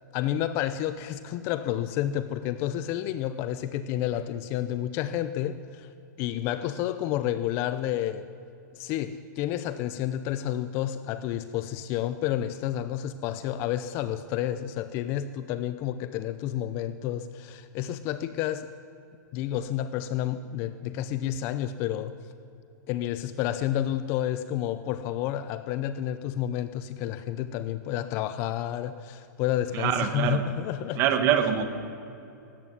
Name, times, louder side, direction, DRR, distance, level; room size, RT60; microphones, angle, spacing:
voice 1, 0.1-5.9 6.2-8.3 8.7-18.7 19.3-22.1 22.9-31.0, left 11 dB, 25° left, 13 dB, 0.6 m, -30 dB
voice 2, 29.7-30.4 31.0-31.7, right 9 dB, 25° right, 9 dB, 1.6 m, -24 dB
17.0 x 16.5 x 9.9 m, 2.7 s
hypercardioid pair, 170°, 10 cm